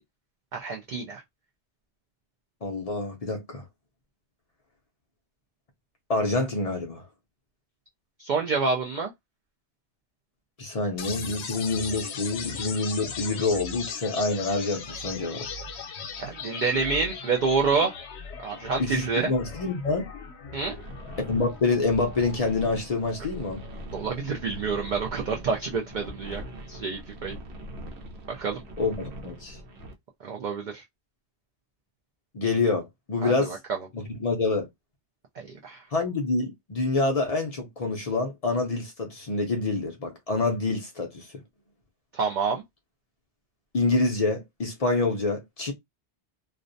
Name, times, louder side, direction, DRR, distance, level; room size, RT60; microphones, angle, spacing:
voice 1, 0.5-1.2 8.2-9.1 16.2-18.0 18.4-19.3 20.5-20.7 23.9-26.4 26.7-27.4 28.3-28.6 30.2-30.8 33.2-33.6 35.4-35.8 42.1-42.6, right 4 dB, 60° right, 0.5 m, -28 dB
voice 2, 2.6-3.6 6.1-7.1 10.6-15.5 18.8-20.1 21.3-23.6 28.8-29.6 32.3-33.6 33.9-34.7 35.9-41.3 43.7-45.7, left 3 dB, 50° left, 0.5 m, -27 dB
sound 1, 11.0-25.0, left 5 dB, 80° left, 0.9 m, -39 dB
sound 2, 20.6-29.9, right 1 dB, 80° right, 0.9 m, -42 dB
2.4 x 2.1 x 2.5 m
omnidirectional pair, 1.1 m